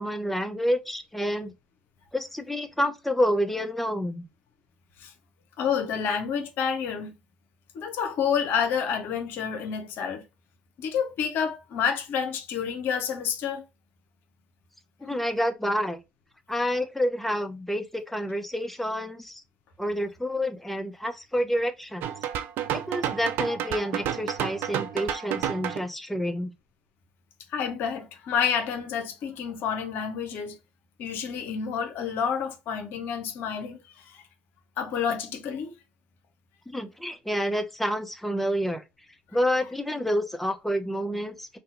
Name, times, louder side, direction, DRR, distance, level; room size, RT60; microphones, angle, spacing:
voice 1, 0.0-1.5 2.1-4.3 15.0-16.0 16.5-19.4 19.8-22.1 22.7-26.5 36.7-38.8 39.3-41.6, equal, 5° left, 0.6 m, -28 dB
voice 2, 5.6-7.1 7.7-10.2 10.8-13.6 27.5-30.6 31.0-34.2 34.8-35.7, left 7 dB, 65° left, 0.8 m, -29 dB
sound 1, 22.0-25.8, right 10 dB, 65° right, 0.4 m, -30 dB
2.7 x 2.3 x 3.7 m
hypercardioid pair, 55°, 4 cm